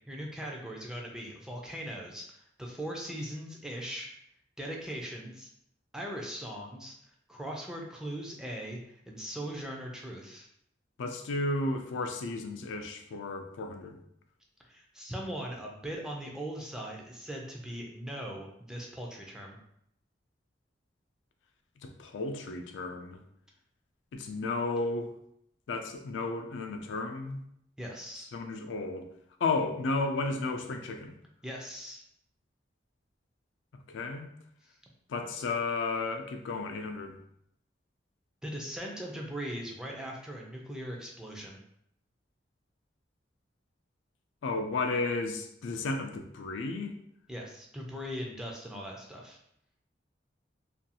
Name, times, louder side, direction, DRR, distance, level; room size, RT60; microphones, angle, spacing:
voice 1, 0.1-4.1 4.6-5.5 5.9-6.9 7.3-8.8 9.1-10.5 14.6-19.6 27.8-28.3 31.4-32.0 38.4-41.6 47.3-49.4, equal, 5° right, -1 dB, 0.3 m, -40 dB
voice 2, 11.0-14.0 21.8-23.2 24.1-25.1 25.7-27.4 28.3-29.1 29.4-31.1 33.9-34.3 35.1-37.2 44.4-46.9, left 3 dB, 75° left, 5 dB, 0.3 m, -33 dB
2.5 x 2.3 x 2.7 m, 0.73 s
head